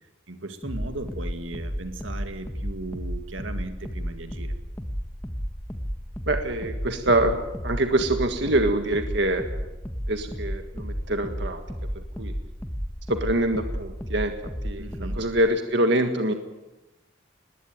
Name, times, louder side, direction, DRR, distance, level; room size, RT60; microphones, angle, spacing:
voice 1, 0.3-4.5 14.8-15.2, right 2 dB, 80° right, 7 dB, 2.2 m, -37 dB
sound 1, 0.6-15.4, equal, 10° left, 1.4 m, -33 dB
voice 2, 6.3-7.4 7.6-9.4 10.1-11.6 11.9-12.3 13.1-14.3 14.6-16.3, right 1 dB, 60° right, 6 dB, 1.7 m, -25 dB
20.5 x 17.0 x 9.4 m, 1.0 s
head